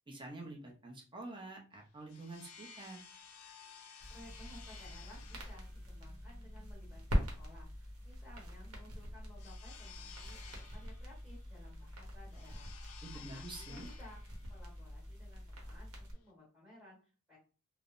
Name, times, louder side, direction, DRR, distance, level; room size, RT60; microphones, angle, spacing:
voice 1, 0.1-3.0 13.0-13.9, right 2 dB, 20° right, 0 dB, 0.7 m, -47 dB
sound 1, 1.7-16.3, left 6 dB, 80° left, 0.5 m, -56 dB
sound 2, 4.0-16.1, equal, 90° right, 0.8 m, -43 dB
voice 2, 4.1-14.2 14.5-17.4, left 1 dB, 5° right, -8 dB, 1.2 m, -58 dB
3.2 x 2.0 x 2.5 m, 0.37 s
head